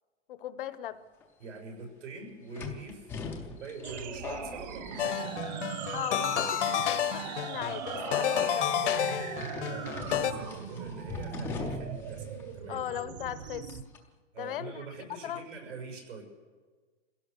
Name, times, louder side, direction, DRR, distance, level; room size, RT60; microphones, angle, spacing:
voice 1, 0.3-1.0 5.9-8.7 12.7-13.7 14.4-15.4, left 11 dB, 50° left, 14 dB, 1.0 m, -38 dB
sound 1, 1.2-1.3 2.5-5.5 5.8-6.3 7.0-7.2 7.9-8.6 9.4-12.1 12.4-12.5 13.7-14.0, left 4 dB, 5° left, 0.5 m, -41 dB
voice 2, 1.4-5.5 9.6-12.8 14.3-16.2, right 4 dB, 90° right, 2 dB, 6.9 m, -44 dB
sound 2, 3.8-13.8, right 8 dB, 35° right, 1.2 m, -39 dB
sound 3, 5.0-10.3, left 9 dB, 70° left, 1.4 m, -30 dB
25.5 x 16.5 x 6.8 m, 1.4 s
hypercardioid pair, 175°, 36 cm